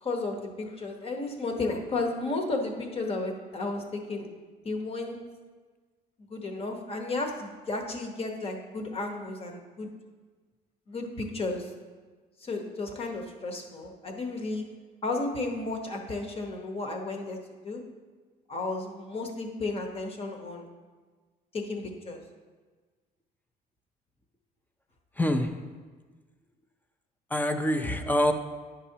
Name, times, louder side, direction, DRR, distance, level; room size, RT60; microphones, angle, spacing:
voice 1, 0.0-4.3 4.6-5.2 6.3-9.9 10.9-11.7 12.4-14.6 15.0-17.4 17.6-17.8 18.5-20.7 21.5-22.2, left 2 dB, 35° left, 2 dB, 1.0 m, -33 dB
voice 2, 25.2-25.5 27.3-28.3, left 1 dB, 10° left, 7 dB, 0.5 m, -25 dB
10.0 x 5.6 x 2.8 m, 1.4 s
cardioid pair, 110°, 17 cm